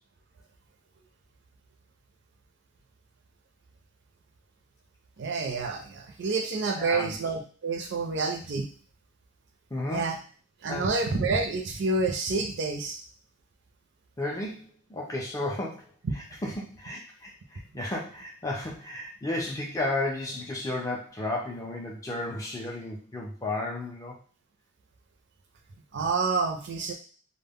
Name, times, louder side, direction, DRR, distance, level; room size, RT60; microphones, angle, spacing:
voice 1, 5.2-8.7 9.9-10.2 10.6-13.0 25.9-26.9, right 3 dB, 50° right, 3 dB, 0.4 m, -28 dB
voice 2, 6.8-7.2 9.7-10.1 10.7-10.9 14.2-15.9 16.4-24.2, left 2 dB, 15° left, -2 dB, 0.4 m, -33 dB
2.1 x 2.0 x 3.4 m, 0.42 s
head